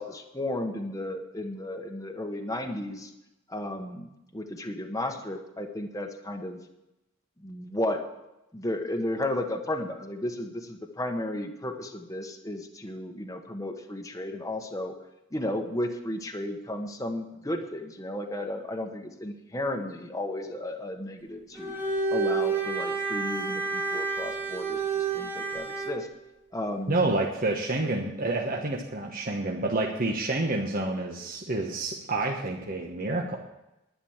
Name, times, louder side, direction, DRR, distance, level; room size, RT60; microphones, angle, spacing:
voice 1, 0.0-3.1 3.5-6.6 7.4-8.1 8.5-14.9 15.3-26.1 26.5-27.0, left 1 dB, 15° left, 4 dB, 1.2 m, -34 dB
Bowed string instrument, 21.6-26.1, right 4 dB, 10° right, 1.7 m, -29 dB
voice 2, 26.9-33.4, right 2 dB, 45° right, 0 dB, 1.2 m, -28 dB
11.0 x 10.5 x 7.3 m, 0.91 s
head